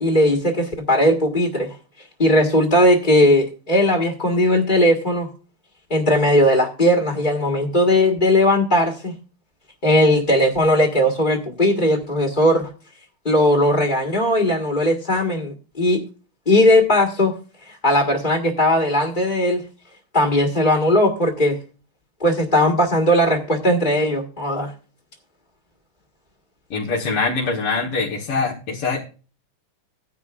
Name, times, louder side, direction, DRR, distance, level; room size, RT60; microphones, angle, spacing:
voice 1, 0.0-1.7 2.2-5.3 5.9-9.2 9.8-12.7 13.2-16.0 16.5-17.3 17.6-19.6 20.1-21.6 22.2-24.7, left 1 dB, 25° left, 3 dB, 1.5 m, -18 dB
voice 2, 26.7-29.0, left 4 dB, 90° left, -3 dB, 2.5 m, -23 dB
16.0 x 10.5 x 2.5 m, 0.36 s
omnidirectional pair, 2.4 m